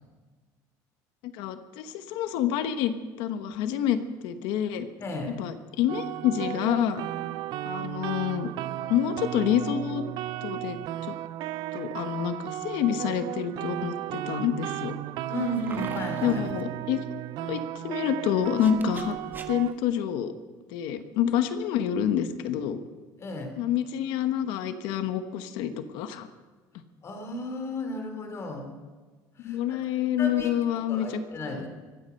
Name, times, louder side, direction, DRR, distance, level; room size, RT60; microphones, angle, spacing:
voice 1, 1.3-4.9 5.4-7.0 7.6-8.5 8.9-10.0 10.4-10.8 11.1-11.2 11.7-14.9 16.2-17.0 17.4-19.2 19.5-20.3 20.7-22.8 23.6-26.3 29.4-31.1 31.5-31.6, left 9 dB, 80° left, 10 dB, 1.1 m, -28 dB
voice 2, 5.0-5.4 15.3-16.4 23.2-23.5 27.0-28.7 29.3-29.8 30.2-30.5 30.9-31.7, left 1 dB, 35° left, 5 dB, 3.3 m, -34 dB
sound 1, 5.9-19.7, right 14 dB, 65° right, 0.6 m, -34 dB
sound 2, 15.4-16.6 18.4-19.8, right 4 dB, 25° right, 1.5 m, -43 dB
24.5 x 8.4 x 5.8 m, 1.4 s
cardioid pair, 120°, 8 cm